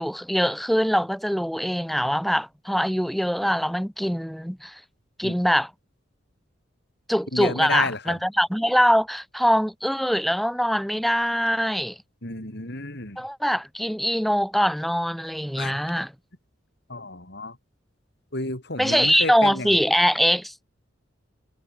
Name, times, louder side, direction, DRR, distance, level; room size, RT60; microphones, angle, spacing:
voice 1, 0.0-4.7 5.2-5.7 7.1-11.9 13.2-16.1 18.8-20.6, equal, ahead, 4.3 m, -23 dB
voice 2, 7.3-8.2 12.2-13.2 15.6-15.8 16.9-17.6 18.3-19.8, left 2 dB, 60° left, 5.5 m, -31 dB
head